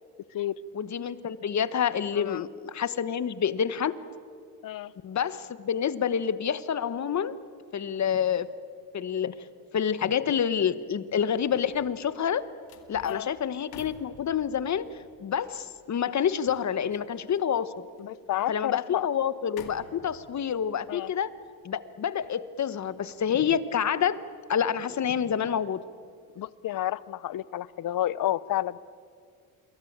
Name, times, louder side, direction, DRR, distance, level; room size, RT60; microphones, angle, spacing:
voice 1, 0.7-3.9 5.0-7.4 7.7-8.5 8.9-9.3 9.7-12.4 12.9-14.9 15.2-17.7 18.5-21.3 21.6-24.2 24.5-25.8, left 8 dB, 50° left, 15 dB, 1.3 m, -28 dB
sound 1, 11.2-24.5 24.9-25.1, left 9 dB, 90° left, 2.2 m, -53 dB
voice 2, 18.0-19.1 20.9-21.1 26.4-28.8, left 13 dB, 65° left, 20 dB, 0.8 m, -30 dB
27.5 x 23.0 x 8.8 m, 2.2 s
cardioid pair, 80°, 36 cm